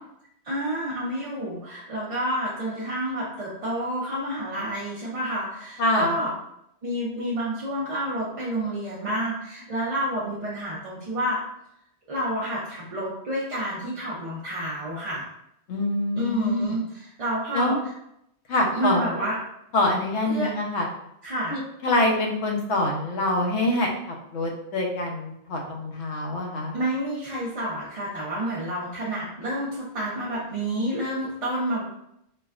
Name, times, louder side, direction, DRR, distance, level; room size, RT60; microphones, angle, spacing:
voice 1, 0.4-6.3 6.8-11.4 12.1-15.3 16.2-17.9 18.7-19.4 20.3-20.5 21.2-21.6 26.7-31.8, right 1 dB, 40° right, -7 dB, 0.5 m, -29 dB
voice 2, 15.7-16.8 17.5-17.8 18.5-19.1 19.7-20.9 21.5-26.7, left 1 dB, 80° left, 1 dB, 1.0 m, -25 dB
4.1 x 2.1 x 2.4 m, 0.78 s
omnidirectional pair, 1.2 m